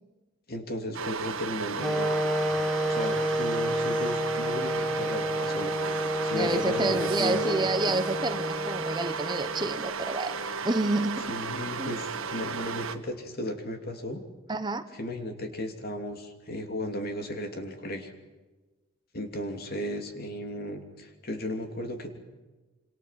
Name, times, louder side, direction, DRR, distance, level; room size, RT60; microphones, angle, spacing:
voice 1, 0.5-2.1 2.9-5.9 6.2-7.7 11.3-14.2 14.9-18.1 19.1-22.2, left 1 dB, 50° left, 5 dB, 2.9 m, -35 dB
sound 1, 0.9-13.0, right 5 dB, 90° right, 1.6 m, -34 dB
sound 2, 1.8-9.8, equal, ahead, 0.8 m, -30 dB
voice 2, 6.3-10.3 10.6-11.2 11.8-11.9 14.5-14.8, right 2 dB, 20° right, 9 dB, 1.0 m, -29 dB
26.5 x 26.5 x 5.9 m, 1.2 s
head